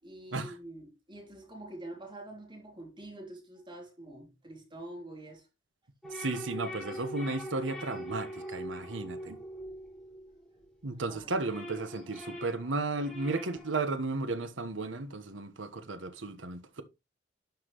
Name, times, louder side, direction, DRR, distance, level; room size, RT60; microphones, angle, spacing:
voice 1, 0.0-5.5 11.1-11.5, right 1 dB, 25° right, 3.3 m, -46 dB
sound 1, 6.0-10.7 11.1-13.9, equal, 5° left, 3.6 m, -42 dB
voice 2, 6.1-9.4 10.8-16.8, right 3 dB, 75° right, 1.3 m, -34 dB
12.0 x 5.9 x 3.1 m
head